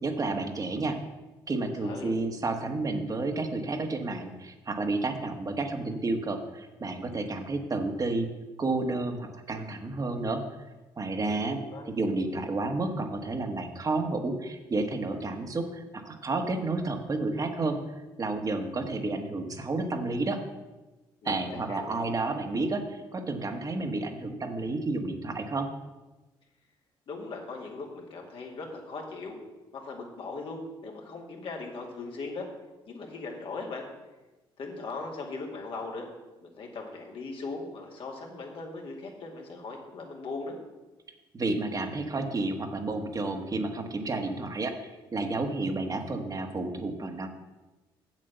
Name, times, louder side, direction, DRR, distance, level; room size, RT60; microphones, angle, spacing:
voice 1, 0.0-1.0 1.5-8.3 8.6-10.4 11.0-11.6 11.9-17.8 18.2-20.4 21.2-25.7 41.3-47.3, right 2 dB, 35° right, 4 dB, 1.4 m, -31 dB
voice 2, 1.8-2.1 11.3-12.0 21.2-22.0 27.1-29.4 29.7-32.5 32.9-33.9 34.6-36.1 36.4-40.6, left 3 dB, 60° left, 0 dB, 2.3 m, -39 dB
7.6 x 7.6 x 6.7 m, 1.1 s
supercardioid pair, 70°, 10 cm